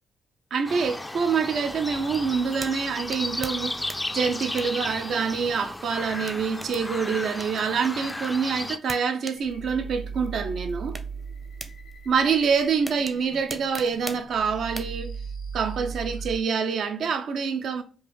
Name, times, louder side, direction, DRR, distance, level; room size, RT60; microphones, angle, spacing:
voice 1, 0.5-11.0 12.1-15.1 15.5-17.8, right 6 dB, 65° right, 0.5 m, -26 dB
sound 1, 0.7-8.8, left 1 dB, 15° left, 0.3 m, -34 dB
sound 2, 1.7-15.0, right 1 dB, 25° right, 0.6 m, -44 dB
sound 3, 9.4-16.4, right 5 dB, 80° left, 0.9 m, -38 dB
3.8 x 2.6 x 3.0 m
hypercardioid pair, 40°, 0 cm